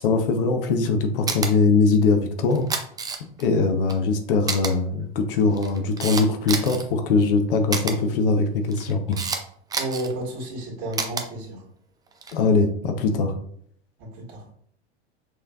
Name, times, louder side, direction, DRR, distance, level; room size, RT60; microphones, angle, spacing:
voice 1, 0.0-2.7 3.4-9.2 12.3-13.3, left 4 dB, 55° left, 5 dB, 0.8 m, -21 dB
Camera, 1.3-1.5 2.5-3.5 3.9-4.0 4.5-4.7 5.4-6.8 7.7-7.9 8.7-9.4 9.7-10.1 10.9-11.2 12.1-12.4, right 4 dB, 10° right, 0.5 m, -28 dB
voice 2, 9.8-11.6 14.0-14.4, right 1 dB, 45° right, -1 dB, 1.8 m, -32 dB
6.2 x 3.2 x 2.3 m, 0.64 s
figure-of-eight pair, 85°, 33 cm